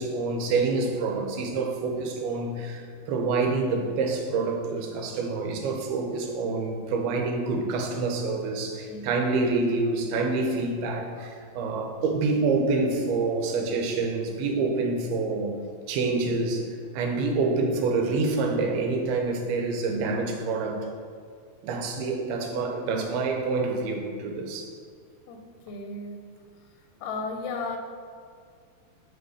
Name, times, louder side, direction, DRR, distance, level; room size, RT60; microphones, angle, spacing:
voice 1, 0.0-15.5 15.9-16.6 16.9-20.9 21.6-24.7, right 3 dB, 85° right, 3 dB, 2.8 m, -27 dB
voice 2, 25.7-26.2 27.0-27.8, left 3 dB, 85° left, 3 dB, 2.7 m, -34 dB
8.8 x 5.3 x 4.8 m, 2.2 s
omnidirectional pair, 4.4 m